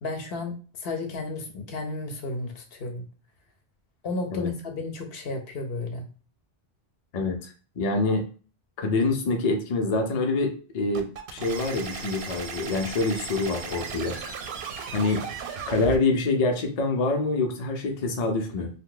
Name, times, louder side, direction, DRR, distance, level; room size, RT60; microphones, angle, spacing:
voice 1, 0.0-3.0 4.0-6.1, left 3 dB, 75° left, 4 dB, 0.9 m, -33 dB
voice 2, 7.1-8.2 8.8-14.2 14.9-15.2 15.7-18.7, left 3 dB, 45° left, 4 dB, 0.6 m, -26 dB
sound 1, 10.9-16.0, right 5 dB, 85° right, 0.8 m, -36 dB
2.7 x 2.2 x 3.7 m, 0.38 s
omnidirectional pair, 1.0 m